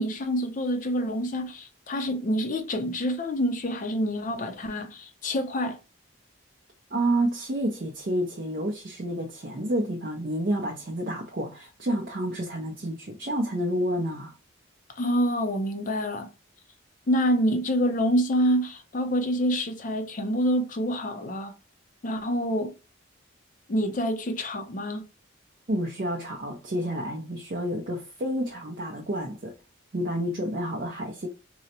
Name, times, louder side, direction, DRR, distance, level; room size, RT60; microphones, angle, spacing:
voice 1, 0.0-5.8 15.0-16.3 17.1-21.5 22.0-22.7 23.7-25.0, equal, 40° left, 0.5 m, -27 dB
voice 2, 6.9-14.3 25.7-29.5 29.9-31.3, right 1 dB, 45° right, 0.5 m, -29 dB
3.8 x 2.1 x 2.8 m
head